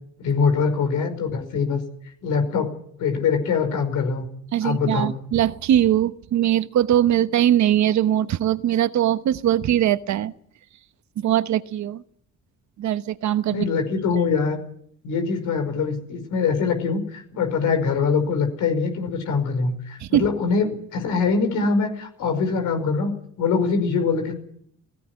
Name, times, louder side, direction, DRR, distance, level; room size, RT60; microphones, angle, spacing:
voice 1, 0.2-1.8 2.2-2.7 3.0-4.3 4.6-5.1 13.5-14.6 15.0-23.1 23.4-24.3, left 5 dB, 85° left, 6 dB, 5.4 m, -23 dB
voice 2, 4.5-10.3 11.2-12.0 12.8-13.6 20.0-20.3, right 11 dB, 70° right, 14 dB, 1.1 m, -21 dB
17.5 x 16.5 x 9.8 m, 0.67 s
cardioid pair, 90°, 30 cm